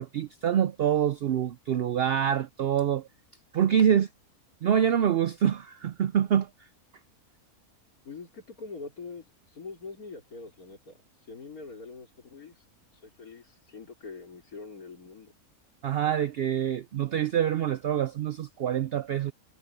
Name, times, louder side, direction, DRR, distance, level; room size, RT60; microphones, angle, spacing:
voice 1, 0.0-3.1 3.5-4.1 4.6-6.5 15.8-19.3, right 9 dB, 70° right, 0.5 m, -25 dB
voice 2, 8.0-11.0 11.3-12.6 13.0-15.3, left 4 dB, 75° left, 4.3 m, -44 dB
omnidirectional pair, 1.5 m